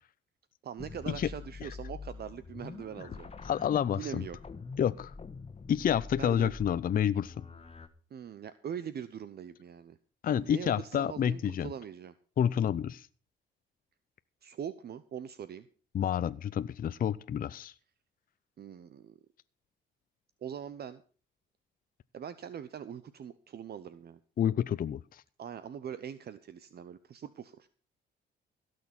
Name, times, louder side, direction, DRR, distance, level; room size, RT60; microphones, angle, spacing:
voice 1, 0.6-3.3 3.9-4.4 6.2-6.5 8.1-10.0 10.3-12.1 14.4-15.7 18.6-19.2 20.4-21.0 22.1-24.2 25.4-27.7, right 8 dB, 55° right, 14 dB, 0.8 m, -42 dB
sound 1, 0.8-7.9, left 4 dB, 30° left, 1.5 m, -46 dB
voice 2, 3.4-4.2 4.8-5.1 5.7-7.4 10.2-11.7 12.4-13.1 15.9-17.7 24.4-25.2, left 9 dB, 45° left, 14 dB, 0.6 m, -29 dB
16.5 x 6.5 x 7.0 m, 0.39 s
cardioid pair, 90°, 20 cm